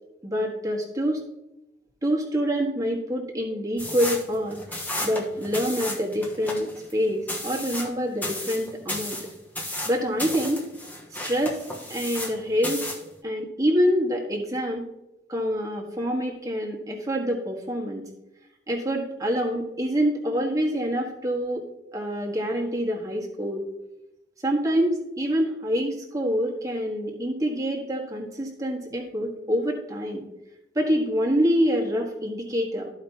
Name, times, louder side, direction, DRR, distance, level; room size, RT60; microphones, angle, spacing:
voice 1, 0.2-1.2 2.0-4.6 5.0-9.2 9.8-10.6 11.2-11.6 11.9-12.9 13.2-14.8 15.3-18.0 18.7-21.6 21.9-23.6 24.4-30.2 30.7-32.9, equal, 20° right, -1 dB, 1.5 m, -26 dB
sound 1, 3.8-12.4 12.6-13.1, left 1 dB, 10° left, 1.1 m, -33 dB
14.0 x 5.1 x 2.8 m, 0.91 s
head